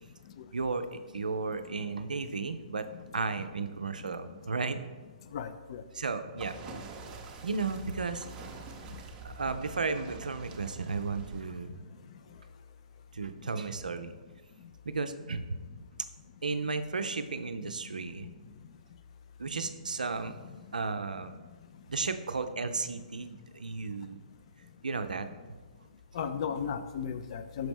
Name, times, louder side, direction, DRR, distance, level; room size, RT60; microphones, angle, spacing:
voice 1, 0.5-2.9 3.1-4.8 5.9-6.6 7.4-8.3 9.2-11.8 13.1-14.1 14.9-15.4 16.4-18.3 19.4-20.4 20.7-21.3 21.9-24.2 24.8-25.3, right 4 dB, 75° right, 9 dB, 0.4 m, -34 dB
voice 2, 5.3-5.8 26.1-27.7, left 7 dB, 45° left, 10 dB, 0.4 m, -35 dB
sound 1, 6.4-11.4, right 4 dB, 20° right, 0.6 m, -46 dB
6.1 x 4.9 x 3.5 m, 1.3 s
figure-of-eight pair, 125°, 4 cm